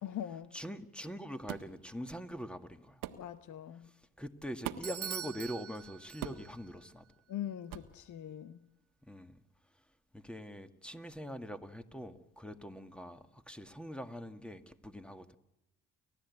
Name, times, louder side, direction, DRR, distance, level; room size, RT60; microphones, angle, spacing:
voice 1, 0.0-0.6 3.1-3.9 7.3-8.6, left 11 dB, 55° left, 12 dB, 1.0 m, -42 dB
voice 2, 0.5-3.0 4.2-7.0 9.0-9.4 10.1-15.4, equal, 5° left, 8 dB, 1.9 m, -43 dB
sound 1, 1.5-1.7 3.0-3.2 4.6-5.0 6.2-6.5 7.7-7.9, right 12 dB, 70° right, 1.4 m, -41 dB
Bell / Doorbell, 4.8-6.7, right 8 dB, 40° right, 1.1 m, -43 dB
29.5 x 13.5 x 8.4 m, 0.89 s
hypercardioid pair, 50°, 35 cm